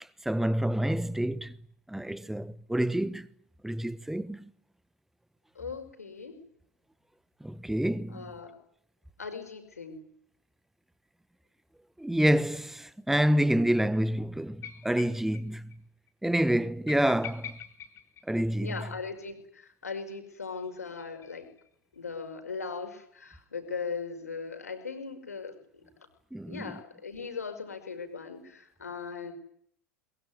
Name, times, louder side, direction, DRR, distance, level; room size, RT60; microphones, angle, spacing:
voice 1, 0.2-1.6 1.9-3.3 3.6-4.5 7.4-8.2 12.0-15.7 16.2-17.6 18.3-18.7 26.3-26.7, right 1 dB, 5° right, 1.2 m, -28 dB
voice 2, 5.6-6.4 8.1-8.6 9.2-10.1 18.6-21.5 21.9-26.1 26.5-29.3, left 5 dB, 80° left, 5.2 m, -39 dB
sound 1, 14.6-15.4 15.7-15.8 16.1-16.2 16.9-18.9 20.4-21.7, left 9 dB, 35° left, 3.0 m, -45 dB
22.5 x 22.0 x 9.6 m
figure-of-eight pair, 80°, 8 cm